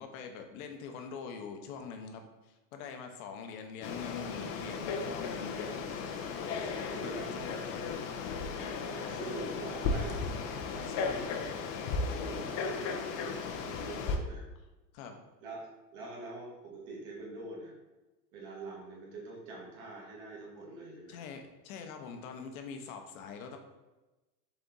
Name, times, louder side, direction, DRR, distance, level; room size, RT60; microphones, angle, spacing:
voice 1, 0.0-5.8 6.6-8.2 10.7-11.6 14.9-15.2 21.1-23.6, left 6 dB, 55° left, 5 dB, 0.8 m, -44 dB
Frog, 3.8-14.2, left 4 dB, 35° left, 0.5 m, -35 dB
voice 2, 6.7-7.3 8.5-10.3 11.9-13.1 13.6-14.4 15.4-17.7 18.3-21.2, right 2 dB, 45° right, -3 dB, 1.4 m, -44 dB
4.0 x 3.4 x 3.8 m, 1.1 s
hypercardioid pair, 110°, 50 cm